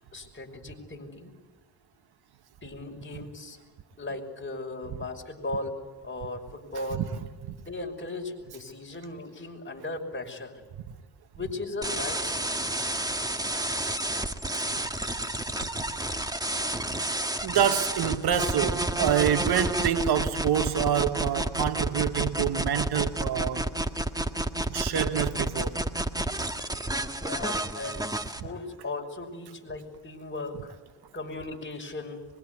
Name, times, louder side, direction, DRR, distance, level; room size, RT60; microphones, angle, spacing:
voice 1, 0.1-1.3 2.6-3.6 4.0-5.8 6.0-7.1 7.7-10.6 11.3-12.5 15.1-17.4 27.2-30.7 31.1-32.3, left 2 dB, 30° left, 6.0 m, -38 dB
sound 1, 11.8-28.4, right 1 dB, 10° right, 1.7 m, -30 dB
voice 2, 17.4-23.7 24.7-25.9 28.4-28.5, right 9 dB, 70° right, 1.7 m, -27 dB
24.0 x 23.0 x 9.7 m
cardioid pair, 75°, 40 cm